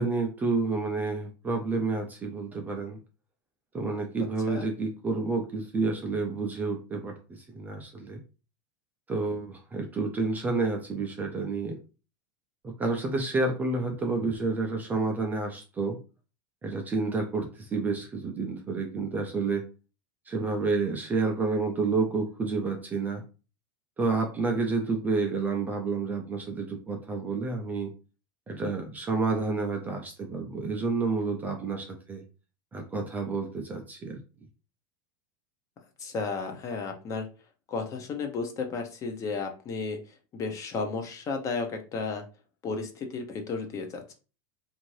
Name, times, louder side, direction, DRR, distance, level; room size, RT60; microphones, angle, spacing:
voice 1, 0.0-3.0 3.7-7.1 7.5-8.2 9.1-11.7 12.6-16.0 16.6-19.6 20.3-23.2 24.0-27.9 28.5-32.2 32.7-34.2, right 3 dB, 15° right, 2 dB, 0.4 m, -29 dB
voice 2, 36.0-37.3 37.7-42.2 42.6-44.1, left 4 dB, 25° left, 4 dB, 0.6 m, -33 dB
2.6 x 2.5 x 3.1 m, 0.34 s
supercardioid pair, 145°, 12 cm